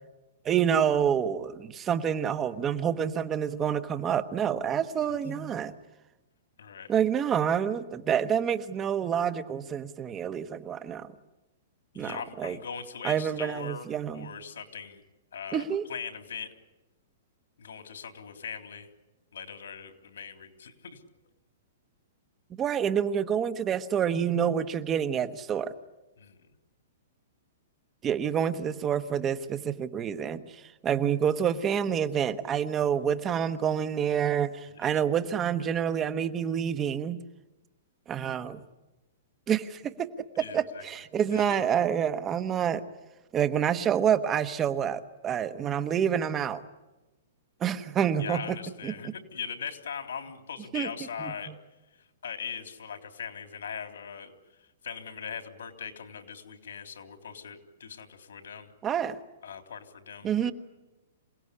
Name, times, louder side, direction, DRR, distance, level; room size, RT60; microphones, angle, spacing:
voice 1, 0.4-5.8 6.9-11.1 11.9-12.6 13.0-14.3 15.5-15.8 22.5-25.7 28.0-37.2 38.1-38.6 39.5-40.1 40.4-42.8 43.3-46.6 47.6-48.6 48.8-49.1 50.7-50.9 51.2-51.5 58.8-59.2 60.2-60.5, right 8 dB, 15° right, 11 dB, 1.2 m, -28 dB
voice 2, 6.6-6.9 11.9-13.9 14.1-15.0 15.3-15.6 15.9-16.5 17.6-18.9 19.3-21.0 26.2-26.4 34.7-34.9 40.4-40.8 41.3-41.4 48.2-51.5 52.2-54.3 54.8-58.7 59.4-60.5, left 7 dB, 85° left, 7 dB, 3.5 m, -40 dB
27.0 x 17.5 x 9.9 m, 1.1 s
hypercardioid pair, 160°, 0 cm